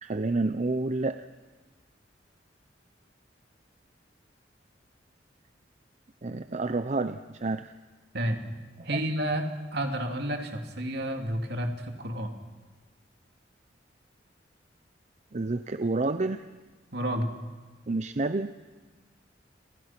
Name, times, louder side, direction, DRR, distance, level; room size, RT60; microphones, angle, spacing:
voice 1, 0.0-1.2 6.2-7.7 8.8-9.0 15.3-16.4 17.9-18.5, right 3 dB, 40° right, 10 dB, 0.7 m, -29 dB
voice 2, 8.8-9.5 9.7-12.3 16.9-17.3, right 1 dB, 65° right, 4 dB, 2.9 m, -30 dB
30.0 x 23.0 x 6.0 m, 1.3 s
head